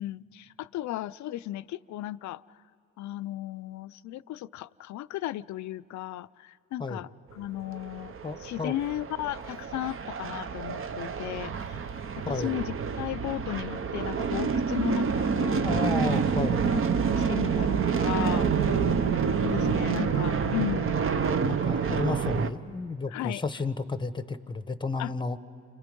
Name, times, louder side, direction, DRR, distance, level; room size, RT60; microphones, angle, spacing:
voice 1, 0.0-2.4 3.0-7.1 7.3-8.1 8.4-11.8 12.2-15.7 16.6-16.8 17.1-18.7 19.4-21.0 23.1-23.4 25.0-25.1, left 15 dB, 70° left, 16 dB, 0.5 m, -35 dB
sound 1, 7.7-22.5, right 6 dB, 45° right, 0.8 m, -28 dB
voice 2, 8.2-8.7 12.2-12.5 15.6-16.7 18.6-19.1 19.6-19.8 21.4-25.4, left 4 dB, 15° left, 12 dB, 0.8 m, -32 dB
Bowed string instrument, 17.6-21.9, left 5 dB, 85° right, 4.9 m, -41 dB
30.0 x 25.5 x 5.3 m, 2.6 s
cardioid pair, 90°, 30 cm